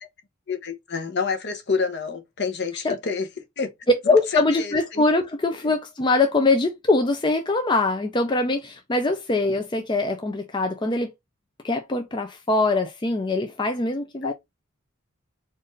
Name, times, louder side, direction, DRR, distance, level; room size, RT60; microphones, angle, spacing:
voice 1, 0.5-3.3 3.6-3.7 4.3-5.0 14.2-14.3, left 5 dB, 55° left, 0.9 m, -28 dB
voice 2, 4.1-11.1 11.6-14.3, left 3 dB, 20° left, 0.4 m, -23 dB
4.4 x 2.5 x 3.1 m
head